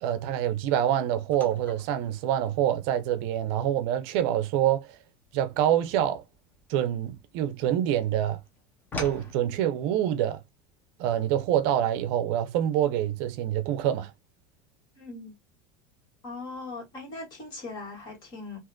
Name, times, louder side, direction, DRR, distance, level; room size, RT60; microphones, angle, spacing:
voice 1, 0.0-5.0 5.3-6.2 6.7-8.4 9.0-10.4 11.0-14.1, right 11 dB, 60° right, 0.5 m, -26 dB
sound 1, 1.3-7.8 8.1-9.3, left 2 dB, 15° left, 0.9 m, -44 dB
voice 2, 15.0-15.3 16.2-18.6, left 3 dB, 35° left, 2.1 m, -40 dB
3.5 x 2.9 x 2.2 m
cardioid pair, 160°, 12 cm